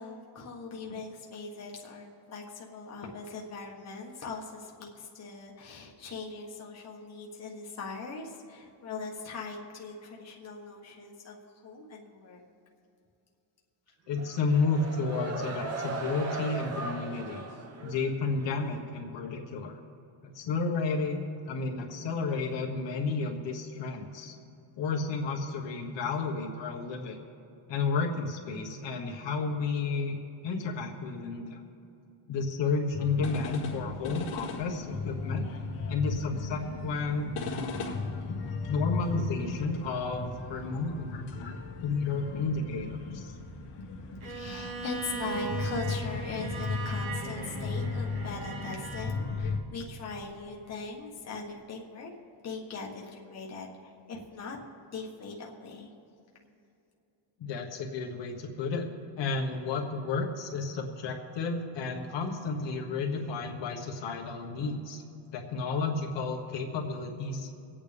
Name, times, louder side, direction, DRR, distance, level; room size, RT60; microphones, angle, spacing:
voice 1, 0.0-12.4 44.2-52.1 52.4-54.6 54.9-55.9, left 4 dB, 30° left, -2 dB, 1.4 m, -40 dB
voice 2, 14.1-17.4 17.8-19.8 20.2-21.2 21.5-24.3 24.8-27.2 27.7-30.2 30.4-31.6 32.3-35.5 35.9-38.0 38.7-43.3 57.4-58.9 59.2-65.0 65.3-67.5, left 4 dB, 60° left, 0 dB, 1.4 m, -32 dB
sound 1, 14.1-18.6, right 3 dB, 30° right, 0.9 m, -38 dB
sound 2, 32.9-49.6, left 4 dB, 85° left, 1.8 m, -36 dB
Bowed string instrument, 44.2-49.1, right 5 dB, 70° right, 2.0 m, -39 dB
25.0 x 8.8 x 3.5 m, 2.7 s
cardioid pair, 165°, 49 cm